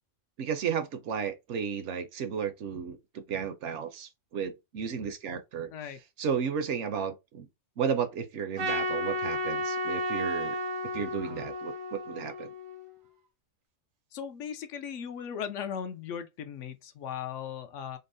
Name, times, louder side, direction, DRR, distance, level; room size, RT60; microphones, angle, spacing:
voice 1, 0.4-5.7 6.2-7.5 7.8-10.6 10.9-12.5, right 7 dB, 70° right, 0.9 m, -33 dB
Trumpet, 8.6-13.0, equal, 85° right, 1.4 m, -33 dB
voice 2, 14.1-18.0, left 8 dB, 70° left, 0.9 m, -37 dB
5.3 x 2.1 x 2.6 m
omnidirectional pair, 1.4 m